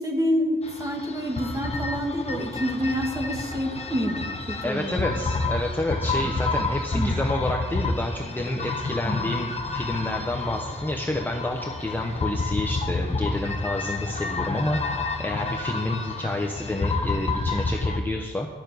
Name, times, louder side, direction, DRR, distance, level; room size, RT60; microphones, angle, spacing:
voice 1, 0.0-5.2 6.2-6.3 6.9-7.1 9.0-9.3, equal, 15° right, 0 dB, 2.1 m, -28 dB
sound 1, 0.6-18.0, left 3 dB, 30° left, 1.2 m, -29 dB
voice 2, 4.6-18.5, left 1 dB, 10° left, 1 dB, 0.9 m, -29 dB
11.5 x 7.3 x 9.3 m, 1.4 s
wide cardioid pair, 165°, 21 cm